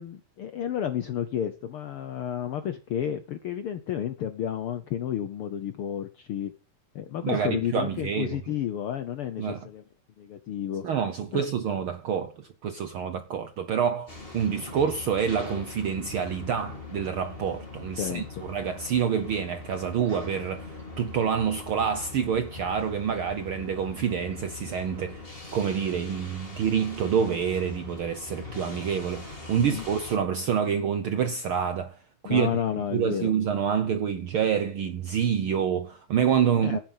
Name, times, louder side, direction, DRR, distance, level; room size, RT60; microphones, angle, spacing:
voice 1, 0.0-6.5 6.9-9.8 10.2-10.8 11.3-11.5 18.0-18.2 29.6-29.8 32.2-33.3 36.6-36.8, left 10 dB, 75° left, 1.2 m, -31 dB
voice 2, 7.2-8.4 9.4-9.6 10.8-32.0 32.2-32.6 32.9-36.8, right 7 dB, 70° right, 1.2 m, -27 dB
sound 1, 14.1-30.2, left 3 dB, 20° left, 3.4 m, -42 dB
12.5 x 9.9 x 5.5 m
omnidirectional pair, 3.5 m